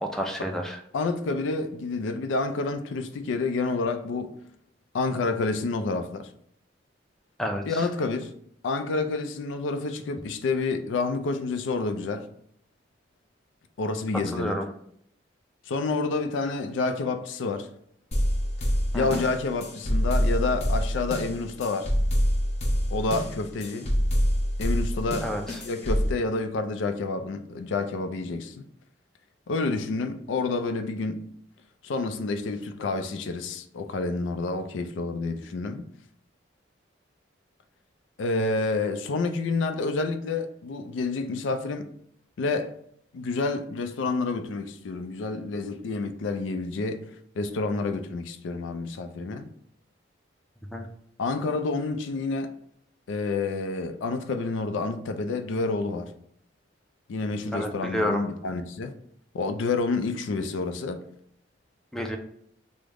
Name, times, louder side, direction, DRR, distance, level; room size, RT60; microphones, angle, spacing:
voice 1, 0.0-0.8 7.4-7.9 14.3-14.7 18.9-19.2 25.2-25.6 50.7-50.9 57.5-58.2 61.9-62.2, equal, ahead, 0.3 m, -30 dB
voice 2, 0.9-4.3 4.9-6.3 7.6-8.3 8.6-12.3 13.8-14.6 15.7-17.7 18.9-21.9 22.9-23.9 24.6-25.3 25.6-28.6 29.5-31.2 31.8-35.9 38.2-41.9 42.4-42.7 43.1-47.0 47.4-49.5 51.2-52.5 53.1-56.1 57.1-58.9 59.3-61.0, left 3 dB, 80° left, 0.4 m, -29 dB
sound 1, 18.1-26.1, equal, 35° left, 0.6 m, -26 dB
3.4 x 2.0 x 3.5 m
head